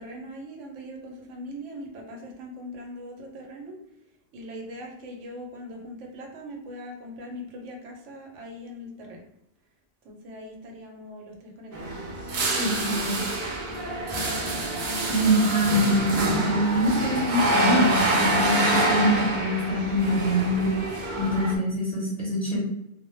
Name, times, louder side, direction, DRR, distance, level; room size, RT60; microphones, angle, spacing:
voice 1, 0.0-3.7 4.3-9.2 10.0-11.9, equal, 80° right, 1 dB, 1.0 m, -41 dB
sound 1, 11.7-21.6, right 2 dB, 60° right, 0.5 m, -26 dB
voice 2, 12.5-13.1 15.1-20.7 21.2-22.6, equal, 40° left, -5 dB, 0.6 m, -24 dB
2.1 x 2.0 x 2.9 m, 0.82 s
omnidirectional pair, 1.2 m